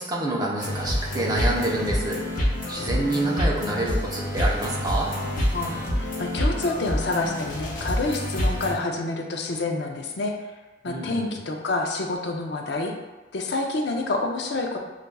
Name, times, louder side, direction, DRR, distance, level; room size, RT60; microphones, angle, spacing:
voice 1, 0.0-2.4 2.7-5.1 10.8-11.4, right 1 dB, 25° right, -4 dB, 0.7 m, -27 dB
sound 1, 0.6-8.7, equal, 50° left, 0.9 m, -27 dB
voice 2, 5.5-10.3 10.8-12.9 13.3-14.8, left 2 dB, 65° left, 2 dB, 0.5 m, -28 dB
6.6 x 2.4 x 2.2 m, 1.1 s
head